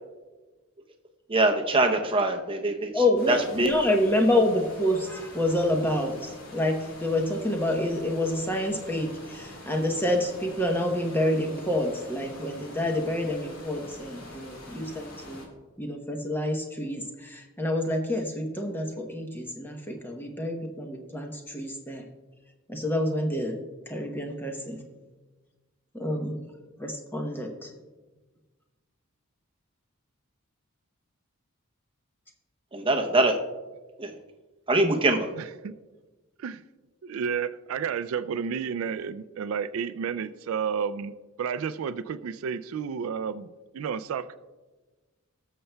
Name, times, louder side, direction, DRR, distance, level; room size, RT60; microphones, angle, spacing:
voice 1, 1.3-2.9 3.3-3.7 32.7-33.4 34.0-34.1 34.7-35.3, right 2 dB, 25° right, 4 dB, 0.7 m, -23 dB
voice 2, 2.9-15.4 15.8-22.0 22.7-23.6 23.9-24.8 25.9-26.3 26.8-27.7, left 1 dB, 10° left, 2 dB, 0.8 m, -28 dB
sound 1, 3.2-15.5, left 1 dB, 80° left, 2.5 m, -45 dB
voice 3, 35.4-35.7 36.4-36.6 37.0-43.5 43.7-44.4, right 6 dB, 70° right, 13 dB, 0.3 m, -31 dB
19.0 x 6.7 x 2.2 m, 1.3 s
head